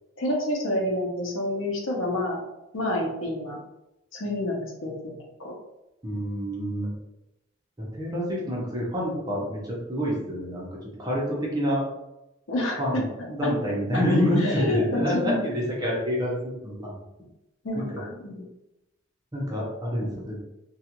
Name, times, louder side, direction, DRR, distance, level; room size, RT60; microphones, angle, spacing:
voice 1, 0.2-2.4 2.7-3.6 4.1-5.5 12.5-13.0 13.4-13.5 14.4-15.3 17.6-18.4, left 1 dB, 80° left, -1 dB, 0.7 m, -28 dB
voice 2, 6.0-6.9 7.9-11.9 12.8-17.0 17.8-17.9 19.3-20.4, equal, 20° right, -5 dB, 0.8 m, -27 dB
2.4 x 2.3 x 2.9 m, 0.92 s
head